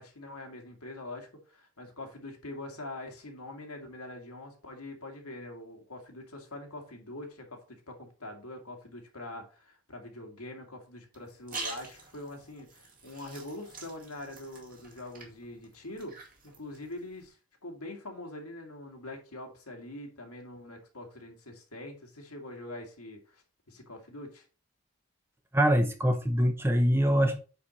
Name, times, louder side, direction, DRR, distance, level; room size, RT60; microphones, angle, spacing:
voice 1, 0.0-24.5, left 1 dB, 90° left, 2.2 m, -44 dB
Long Splash and squishy sound, 11.1-17.3, right 3 dB, 40° right, 2.3 m, -46 dB
voice 2, 25.5-27.4, equal, 10° right, 0.9 m, -24 dB
9.3 x 4.5 x 4.1 m
head